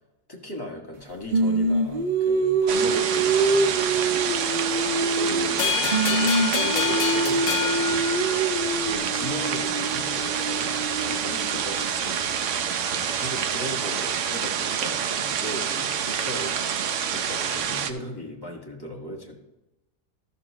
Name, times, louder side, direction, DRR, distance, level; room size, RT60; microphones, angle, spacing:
voice 1, 0.3-4.0 4.9-8.0 8.8-10.7 11.0-12.3 12.9-16.6 17.1-19.4, left 1 dB, 15° left, -2 dB, 1.6 m, -37 dB
Singing, 1.3-5.6 5.9-11.9, right 3 dB, 90° right, 0.4 m, -25 dB
sound 1, 2.7-17.9, right 8 dB, 65° right, 0.8 m, -27 dB
sound 2, 5.6-8.8, left 9 dB, 90° left, 0.5 m, -28 dB
13.5 x 6.9 x 3.0 m, 0.99 s
omnidirectional pair, 1.8 m